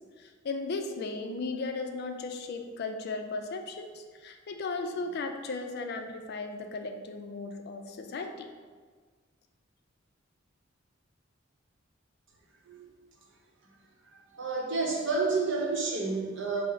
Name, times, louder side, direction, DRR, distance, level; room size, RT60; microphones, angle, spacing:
voice 1, 0.4-8.5, left 3 dB, 50° left, 5 dB, 0.4 m, -36 dB
voice 2, 14.3-16.6, right 3 dB, 60° right, -1 dB, 0.8 m, -30 dB
4.6 x 2.0 x 4.7 m, 1.5 s
head